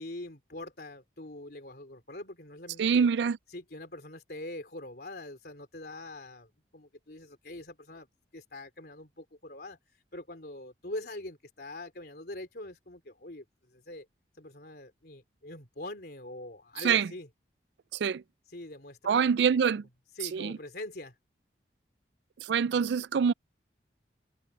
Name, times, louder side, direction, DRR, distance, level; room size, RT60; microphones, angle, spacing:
voice 1, 0.0-3.1 3.5-8.1 8.3-14.1 14.4-17.3 18.5-19.6 20.1-21.2, left 1 dB, 60° left, 3.6 m, -43 dB
voice 2, 2.8-3.4 16.8-17.1 17.9-18.2 19.0-19.8 20.3-20.6 22.4-23.3, right 6 dB, 70° right, 0.3 m, -25 dB
head